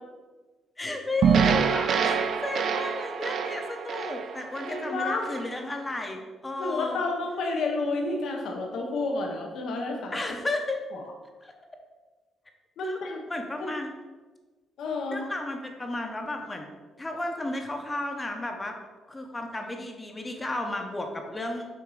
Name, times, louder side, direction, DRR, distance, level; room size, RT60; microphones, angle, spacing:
voice 1, 0.8-7.0 10.1-10.8 11.4-11.5 12.8-13.0 13.3-13.9 15.1-16.7 17.0-18.8 19.1-21.7, left 2 dB, 20° left, 3 dB, 0.9 m, -33 dB
sound 1, 1.2-5.5, right 6 dB, 60° right, 0.4 m, -26 dB
voice 2, 4.7-5.2 6.6-10.2 10.9-11.0 12.8-13.2 13.6-13.7 14.8-15.2, left 3 dB, 75° left, 1 dB, 1.0 m, -30 dB
6.9 x 2.8 x 4.8 m, 1.3 s
cardioid pair, 90°, 0 cm